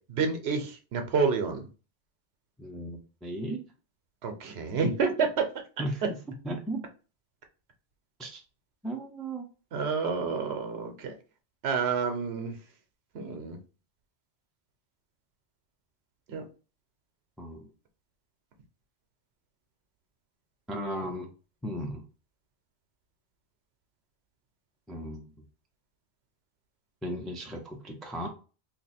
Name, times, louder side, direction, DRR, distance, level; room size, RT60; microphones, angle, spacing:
voice 1, 0.1-1.7 4.2-5.4 9.7-11.1 11.6-12.5 13.1-13.6 16.3-16.4, right 5 dB, 70° right, 5 dB, 0.9 m, -29 dB
voice 2, 2.6-3.6 5.8-6.2 6.4-6.8 8.2-8.4 8.8-9.5 17.4-17.7 20.7-21.3 21.6-22.0 24.9-25.2 27.0-28.3, right 1 dB, ahead, 2 dB, 0.3 m, -35 dB
2.9 x 2.5 x 4.1 m, 0.35 s
omnidirectional pair, 1.1 m